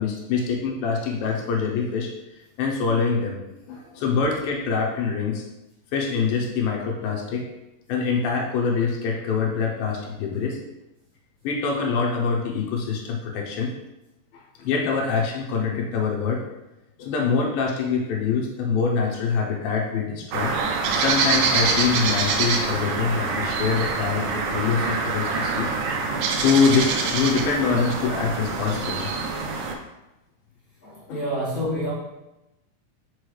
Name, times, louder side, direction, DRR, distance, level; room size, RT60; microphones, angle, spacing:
voice 1, 0.0-2.1 2.6-3.4 3.7-5.4 5.9-7.4 7.9-10.6 11.4-13.7 14.6-16.4 17.0-20.5 20.9-25.7 26.4-29.1 31.1-31.2, left 5 dB, 80° left, -1 dB, 2.5 m, -24 dB
sound 1, 20.3-29.8, right 4 dB, 75° right, 2.3 m, -25 dB
voice 2, 30.8-31.9, equal, 35° left, -9 dB, 1.6 m, -28 dB
6.2 x 5.2 x 3.2 m, 0.96 s
omnidirectional pair, 4.2 m